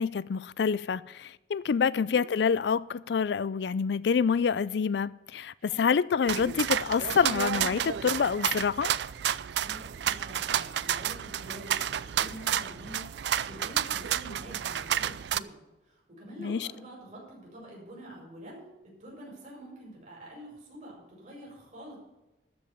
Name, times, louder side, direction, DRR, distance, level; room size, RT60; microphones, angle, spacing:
voice 1, 0.0-8.9 16.4-16.7, left 6 dB, 70° left, 0.4 m, -27 dB
voice 2, 1.9-2.3 5.6-5.9 9.6-18.7 19.0-22.0, equal, 45° right, 5.5 m, -47 dB
sound 1, 6.3-15.4, right 10 dB, 70° right, 0.4 m, -31 dB
13.0 x 5.3 x 8.6 m
head